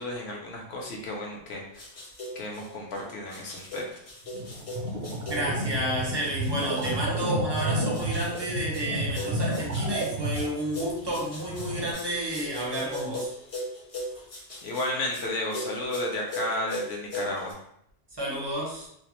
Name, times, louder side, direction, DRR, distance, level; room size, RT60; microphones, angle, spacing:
voice 1, 0.0-1.9 2.4-3.8 14.6-17.6, left 1 dB, 65° left, -1 dB, 0.8 m, -33 dB
sound 1, 1.5-17.5, equal, 40° left, 0.6 m, -39 dB
sound 2, 4.3-11.9, right 1 dB, 65° right, 0.7 m, -31 dB
voice 2, 5.3-13.3 14.1-14.2 18.1-18.9, right 1 dB, 30° right, -4 dB, 0.5 m, -31 dB
2.4 x 2.0 x 2.9 m, 0.71 s
omnidirectional pair, 1.2 m